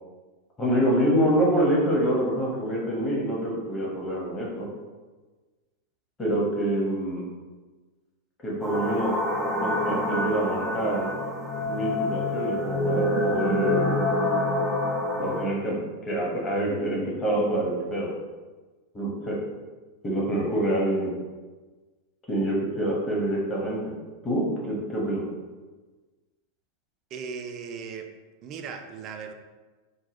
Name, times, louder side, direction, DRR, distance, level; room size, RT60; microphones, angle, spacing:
voice 1, 0.6-4.7 6.2-7.3 8.4-9.1 9.6-11.1 11.7-14.0 15.2-18.1 18.9-19.3 20.0-21.1 22.3-23.9 24.2-25.2, right 1 dB, 20° left, -4 dB, 1.2 m, -26 dB
sound 1, 8.6-15.4, left 1 dB, ahead, 0.7 m, -26 dB
voice 2, 27.1-28.1 28.4-29.3, right 6 dB, 35° right, 5 dB, 0.4 m, -37 dB
4.0 x 2.2 x 4.0 m, 1.3 s
figure-of-eight pair, 90°, 0 cm